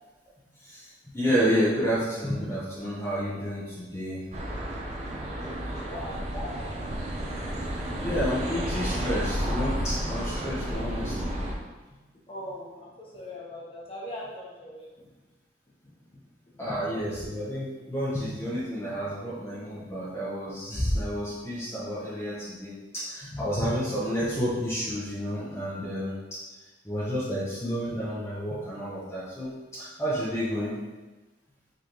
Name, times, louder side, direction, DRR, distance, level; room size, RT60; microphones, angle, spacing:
voice 1, 0.6-4.2 5.8-6.0 6.3-6.5 8.0-11.3 16.6-26.2 26.8-30.8, equal, 15° left, -10 dB, 0.9 m, -30 dB
sound 1, 4.3-11.5, equal, 40° right, 0.7 m, -31 dB
voice 2, 5.2-6.3 12.3-14.9 16.1-16.2, left 1 dB, 30° left, -5 dB, 1.2 m, -41 dB
5.1 x 3.4 x 3.0 m, 1.2 s
head